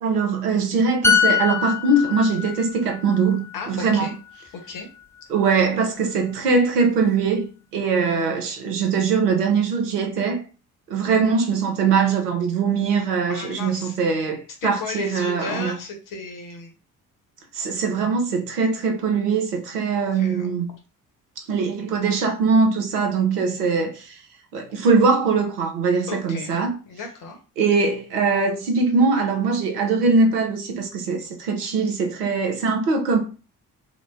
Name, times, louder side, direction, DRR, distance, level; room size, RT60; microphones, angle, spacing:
voice 1, 0.0-4.1 5.3-7.5 7.7-10.4 10.9-15.8 17.5-20.7 21.4-24.2 24.5-26.8 27.6-33.2, right 4 dB, 75° right, 0.8 m, -21 dB
sound 1, 1.0-4.6 5.0-5.2, left 6 dB, 5° left, 0.4 m, -24 dB
voice 2, 3.5-4.1 4.5-4.9 7.8-8.1 13.3-13.9 14.6-16.7 19.9-20.6 26.1-26.5 26.9-27.4, left 4 dB, 45° left, 1.1 m, -34 dB
4.7 x 2.2 x 2.5 m
figure-of-eight pair, 45°, 47 cm